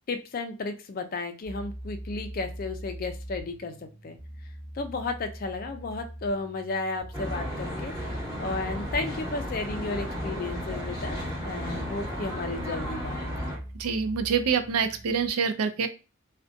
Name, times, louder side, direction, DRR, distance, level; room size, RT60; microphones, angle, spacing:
voice 1, 0.1-4.2 4.7-11.2 11.4-13.4, left 3 dB, 40° left, 7 dB, 0.3 m, -33 dB
sound 1, 1.4-15.3, right 1 dB, 35° right, 0.6 m, -42 dB
Traffic noise roadway noise, 7.1-13.6, equal, 15° right, 1.0 m, -34 dB
voice 2, 13.8-15.9, right 6 dB, 90° right, 8 dB, 0.4 m, -26 dB
2.5 x 2.2 x 2.5 m, 0.33 s
head